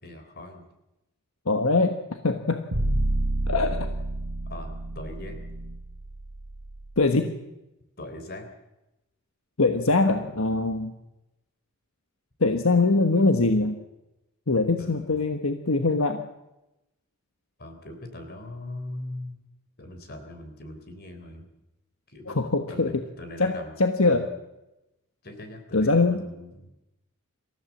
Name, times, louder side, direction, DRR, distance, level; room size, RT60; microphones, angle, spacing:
voice 1, 0.0-0.6 3.5-3.8 4.5-5.5 8.0-8.5 14.8-15.2 17.6-19.4 19.8-21.5 22.1-22.4 22.7-23.7 24.0-24.4 25.2-26.7, left 1 dB, 45° left, 7 dB, 3.7 m, -40 dB
voice 2, 1.5-2.6 3.5-3.9 7.0-7.3 9.6-10.9 12.4-13.8 14.5-16.2 22.3-23.0 23.4-24.3 25.7-26.2, left 3 dB, 75° left, 6 dB, 1.3 m, -23 dB
sound 1, 2.7-6.8, right 1 dB, 85° right, 2.1 m, -29 dB
26.5 x 15.5 x 7.4 m, 0.96 s
head